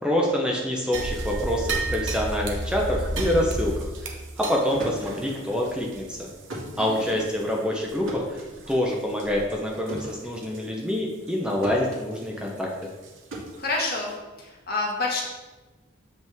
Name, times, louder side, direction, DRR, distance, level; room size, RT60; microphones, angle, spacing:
voice 1, 0.0-6.3 6.8-8.4 8.7-12.7, left 1 dB, 5° right, -2 dB, 0.7 m, -26 dB
sound 1, 0.9-7.5 7.8-8.0 8.5-8.7 9.2-9.5 9.9-10.0 10.5-10.6 13.0-13.1 13.7-13.8, right 2 dB, 70° right, 1.0 m, -32 dB
sound 2, 1.7-11.4 11.6-14.6, right 1 dB, 85° right, 2.1 m, -39 dB
voice 2, 6.7-7.2 13.6-14.1 14.4-15.2, left 2 dB, 50° left, -2 dB, 1.5 m, -28 dB
7.5 x 5.4 x 3.5 m, 1.2 s
head